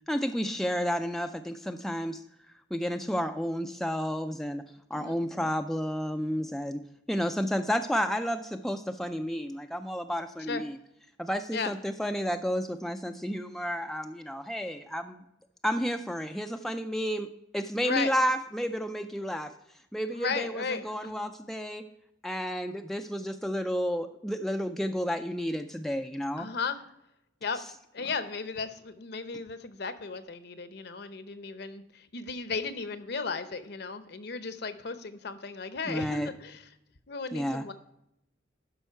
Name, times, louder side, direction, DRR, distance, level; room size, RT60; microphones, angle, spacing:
voice 1, 0.1-2.2 2.7-4.6 4.9-10.7 11.2-15.2 15.6-19.5 19.9-21.8 22.2-26.5 35.9-36.3 37.3-37.6, equal, ahead, 6 dB, 0.3 m, -31 dB
voice 2, 17.8-18.1 20.1-21.1 26.4-26.8 27.4-27.6 27.9-36.7 37.1-37.7, left 4 dB, 55° left, 11 dB, 0.7 m, -35 dB
12.0 x 5.5 x 4.5 m, 0.81 s
head